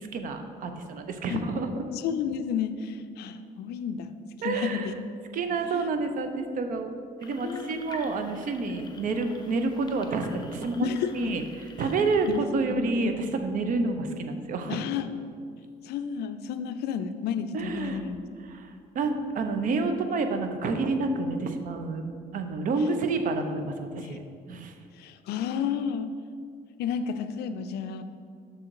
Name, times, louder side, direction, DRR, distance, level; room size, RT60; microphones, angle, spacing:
voice 1, 0.1-1.7 4.4-4.9 5.3-6.9 7.2-11.4 11.8-14.9 17.5-18.0 18.5-24.2 24.5-24.7, right 3 dB, 50° right, 7 dB, 0.6 m, -29 dB
voice 2, 1.9-4.1 4.4-4.9 5.7-5.9 7.4-7.8 10.8-11.3 11.8-11.9 12.3-13.1 14.7-15.1 15.8-18.3 23.8-24.2 24.9-26.1 26.8-28.0, left 7 dB, 75° left, 10 dB, 0.4 m, -32 dB
sound 1, 7.2-12.4, left 4 dB, 25° left, 0.6 m, -49 dB
6.3 x 3.7 x 4.6 m, 2.2 s
cardioid pair, 110°, 17 cm